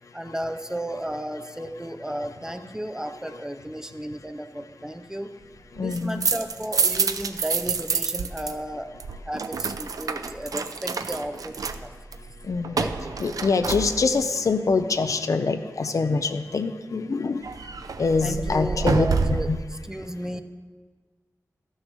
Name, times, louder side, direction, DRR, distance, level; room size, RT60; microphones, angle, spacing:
voice 1, 0.1-5.3 5.8-8.9 9.2-11.9 12.7-13.0 18.2-20.4, right 1 dB, 10° right, 8 dB, 0.6 m, -34 dB
voice 2, 5.8-6.3 12.5-12.9 13.2-17.4 18.0-19.1 19.5-19.6, left 4 dB, 65° left, 9 dB, 0.6 m, -24 dB
Opening closing door with keys, 5.8-8.5 8.8-14.4 17.4-19.6, right 5 dB, 80° right, 0.5 m, -28 dB
13.0 x 6.4 x 6.3 m, 1.5 s
wide cardioid pair, 105°, 6 cm